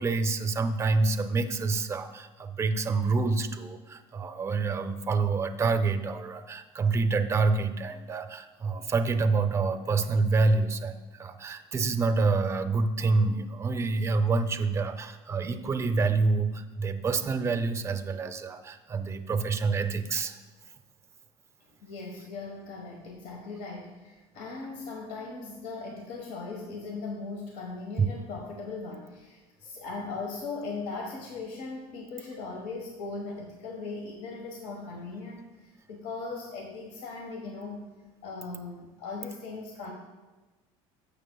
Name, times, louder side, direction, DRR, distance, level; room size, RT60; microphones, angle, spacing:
voice 1, 0.0-20.4 28.0-28.1, right 4 dB, 20° right, 9 dB, 0.5 m, -27 dB
voice 2, 21.8-37.8 38.2-39.9, left 3 dB, 70° left, 0 dB, 1.3 m, -39 dB
12.5 x 6.6 x 2.3 m, 1.2 s
cardioid pair, 125°, 12 cm